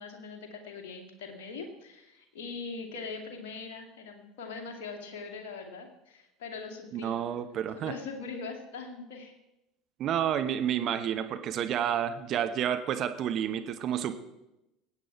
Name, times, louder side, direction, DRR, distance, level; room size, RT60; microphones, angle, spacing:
voice 1, 0.0-7.3 7.8-9.4 11.7-11.8, left 4 dB, 60° left, 2 dB, 2.4 m, -41 dB
voice 2, 6.9-7.9 10.0-14.2, right 9 dB, 45° right, 8 dB, 1.0 m, -30 dB
20.5 x 8.4 x 4.7 m, 0.92 s
figure-of-eight pair, 70°, 0 cm